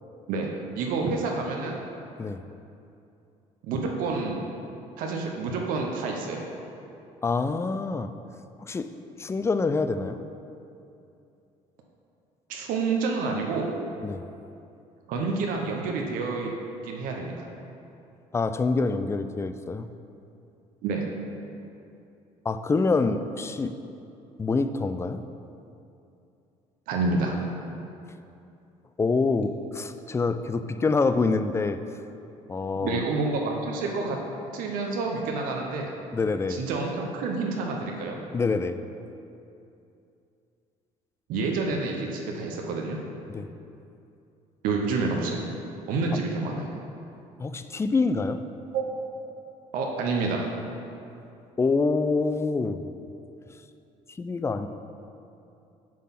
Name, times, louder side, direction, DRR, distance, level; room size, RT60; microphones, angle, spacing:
voice 1, 0.8-1.8 3.6-4.4 5.0-6.4 12.5-13.7 15.1-16.5 16.8-17.5 20.8-21.0 26.9-27.4 32.8-34.2 34.5-35.9 36.5-38.2 41.3-43.0 44.6-45.5 45.9-46.7 48.7-48.8 49.7-50.5, right 3 dB, 75° right, 1 dB, 0.8 m, -28 dB
voice 2, 7.2-8.1 8.6-8.9 9.2-10.2 14.0-14.2 18.3-19.9 22.5-23.7 24.4-25.2 29.0-31.8 32.5-33.0 36.1-36.6 38.3-38.8 43.3-43.5 47.4-48.4 51.6-52.8 54.2-54.7, left 4 dB, 20° left, 10 dB, 0.3 m, -26 dB
7.5 x 3.7 x 5.8 m, 2.7 s
supercardioid pair, 85°, 14 cm